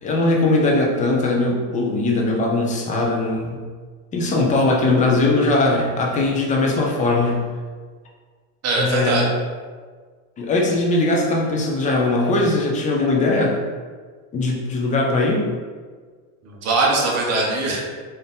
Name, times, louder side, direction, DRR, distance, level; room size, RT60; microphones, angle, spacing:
voice 1, 0.0-3.6 4.1-7.4 8.8-9.2 10.4-13.6 14.3-15.5, left 2 dB, 15° left, -1 dB, 0.4 m, -20 dB
voice 2, 8.6-9.3 16.4-17.8, right 2 dB, 35° right, -2 dB, 0.9 m, -21 dB
3.9 x 2.6 x 3.6 m, 1.5 s
supercardioid pair, 140°, 46 cm